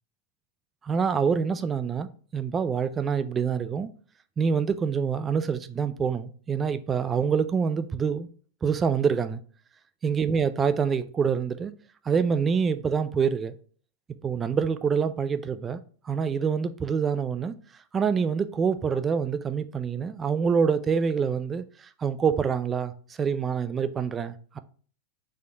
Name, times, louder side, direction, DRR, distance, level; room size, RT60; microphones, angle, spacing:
voice 1, 0.8-3.9 4.4-8.3 8.6-9.4 10.0-11.7 12.0-13.5 14.2-15.8 16.0-17.5 17.9-24.6, right 6 dB, 20° right, 0.3 m, -26 dB
4.3 x 2.7 x 4.4 m
figure-of-eight pair, 90°, 0 cm